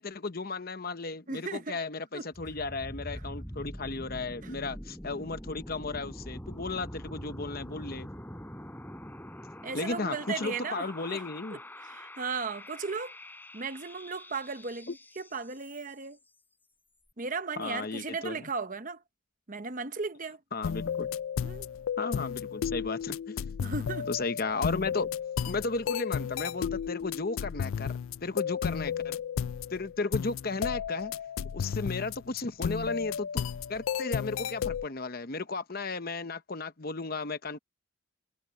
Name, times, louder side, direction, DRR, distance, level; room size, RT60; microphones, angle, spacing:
voice 1, 0.0-8.1 9.7-11.6 17.6-18.5 20.5-21.1 22.0-23.6 24.1-25.1 25.5-29.2 29.7-31.1 31.5-33.4 33.7-37.6, left 3 dB, 45° left, 0.9 m, -35 dB
voice 2, 1.3-1.8 2.1-2.3 4.4-4.5 9.6-11.2 11.5-13.2 13.5-16.2 17.2-19.0 19.5-20.4 21.4-21.7 23.6-24.1, right 4 dB, 35° right, 0.9 m, -36 dB
sound 1, 2.3-16.1, equal, 10° left, 5.5 m, -44 dB
sound 2, 20.6-34.9, left 7 dB, 65° left, 0.4 m, -33 dB
head